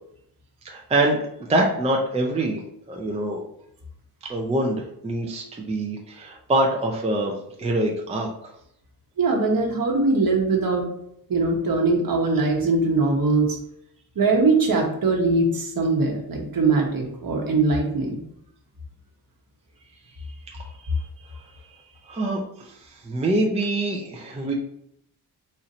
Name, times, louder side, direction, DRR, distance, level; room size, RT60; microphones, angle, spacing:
voice 1, 0.6-2.6 2.9-3.4 4.3-7.3 7.6-8.5 20.5-20.9 22.1-24.5, right 1 dB, 15° right, 0 dB, 0.5 m, -25 dB
voice 2, 9.2-10.8 11.3-13.6 14.2-18.2, right 3 dB, 55° right, 1 dB, 1.0 m, -21 dB
4.3 x 2.6 x 4.1 m, 0.74 s
wide cardioid pair, 170°, 41 cm